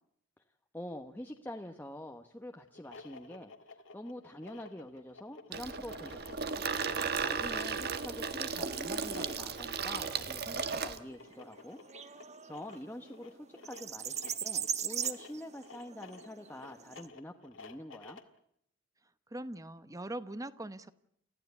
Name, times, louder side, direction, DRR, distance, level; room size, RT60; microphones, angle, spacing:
voice 1, 0.7-6.7 7.2-11.8 12.1-12.2 12.5-18.2, left 1 dB, 10° left, 4 dB, 1.1 m, -46 dB
sound 1, 2.7-18.4, left 3 dB, 75° left, 2.1 m, -52 dB
Water tap faucet / Sink (filling or washing), 5.5-11.0, right 5 dB, 55° right, 1.5 m, -35 dB
sound 2, 9.0-17.1, right 9 dB, 35° right, 1.1 m, -41 dB
voice 2, 19.3-20.9, right 1 dB, 15° right, 13 dB, 0.9 m, -41 dB
29.5 x 15.0 x 8.1 m, 0.69 s
head